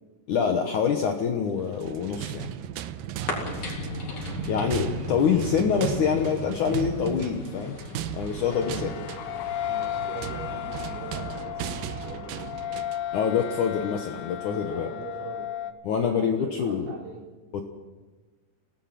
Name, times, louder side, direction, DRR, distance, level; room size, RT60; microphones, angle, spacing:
voice 1, 0.3-2.5 4.4-7.8 8.1-9.0 13.1-14.9 15.8-17.0 17.5-17.6, left 7 dB, 65° left, 4 dB, 2.0 m, -26 dB
sound 1, 1.7-13.1, right 11 dB, 85° right, 2.0 m, -36 dB
voice 2, 3.1-4.2 8.1-9.2 9.6-13.0 14.7-15.5 16.0-17.3, right 4 dB, 65° right, 0 dB, 5.2 m, -43 dB
sound 2, 3.3-11.3, left 2 dB, 45° left, 4.8 m, -37 dB
sound 3, 8.5-15.7, left 11 dB, 85° left, 3.4 m, -35 dB
26.0 x 18.0 x 6.0 m, 1.2 s
omnidirectional pair, 5.1 m